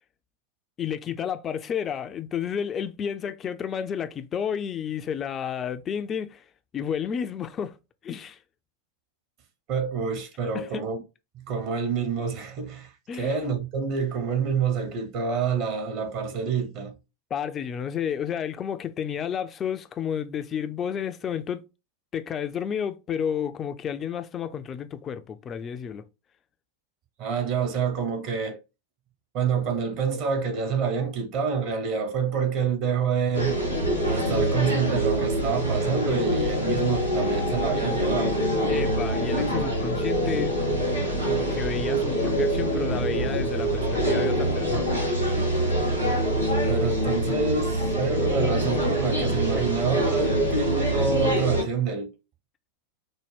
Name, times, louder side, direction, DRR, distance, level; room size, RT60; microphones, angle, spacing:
voice 1, 0.8-6.4 6.7-7.8 8.0-8.4 10.5-10.8 13.1-13.5 17.3-21.6 22.1-26.1 38.7-40.5 41.2-45.0, left 8 dB, 25° left, 0.4 m, -31 dB
voice 2, 9.7-11.0 11.3-16.9 27.2-28.6 29.3-33.5 34.0-38.3 38.6-38.7 46.7-52.1, right 5 dB, 40° right, 0.9 m, -27 dB
sound 1, 33.3-51.6, right 1 dB, 90° right, 1.2 m, -25 dB
4.2 x 2.1 x 3.3 m
figure-of-eight pair, 90°, 0 cm